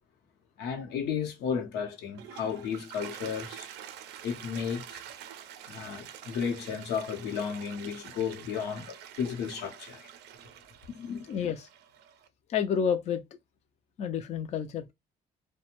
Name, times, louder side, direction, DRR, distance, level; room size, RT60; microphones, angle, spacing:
voice 1, 0.6-3.7 4.2-5.0 5.7-10.1 10.9-11.3, left 7 dB, 85° left, 0.8 m, -33 dB
Toilet flush, 1.9-12.3, right 10 dB, 85° right, 0.4 m, -47 dB
voice 2, 11.3-11.7 12.5-13.2 14.0-14.9, left 7 dB, 40° left, 0.4 m, -29 dB
2.5 x 2.2 x 2.9 m
cardioid pair, 110°, 17 cm